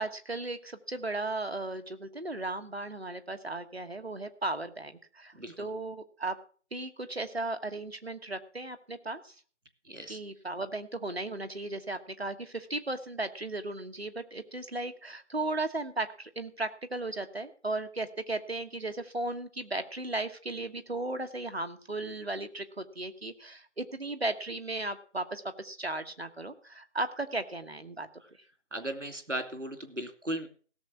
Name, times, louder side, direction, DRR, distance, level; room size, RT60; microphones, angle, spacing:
voice 1, 0.0-6.4 6.7-9.3 10.1-28.1, right 2 dB, 60° right, 9 dB, 1.4 m, -36 dB
voice 2, 9.9-10.2 28.7-30.5, right 1 dB, 85° right, 7 dB, 2.7 m, -36 dB
16.5 x 7.3 x 5.9 m, 0.42 s
figure-of-eight pair, 170°, 36 cm